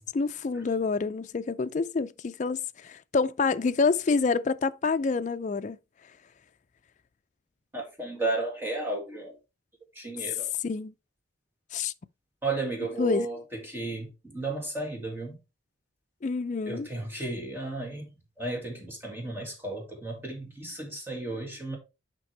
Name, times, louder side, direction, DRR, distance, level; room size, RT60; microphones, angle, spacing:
voice 1, 0.0-5.8 10.6-10.9 11.7-11.9 13.0-13.3 16.2-16.9, left 4 dB, 40° left, 0.3 m, -27 dB
voice 2, 7.7-9.4 9.9-10.5 12.4-15.4 16.7-18.1 18.4-21.8, right 2 dB, 10° right, 2.0 m, -33 dB
7.5 x 5.2 x 3.2 m
head